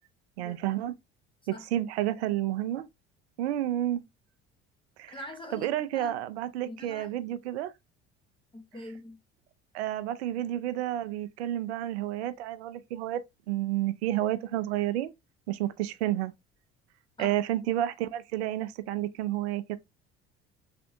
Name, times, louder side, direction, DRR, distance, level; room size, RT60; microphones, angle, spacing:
voice 1, 0.4-0.9 1.5-2.9 3.4-4.0 5.0-5.1 5.5-7.7 9.7-15.1 15.5-16.3 17.2-19.8, right 13 dB, 80° right, 0.5 m, -30 dB
voice 2, 1.5-1.9 5.1-6.2 6.6-7.1 8.5-9.2 17.2-17.4, left 1 dB, 15° left, 0.9 m, -44 dB
3.5 x 3.3 x 2.6 m
hypercardioid pair, 65°, 32 cm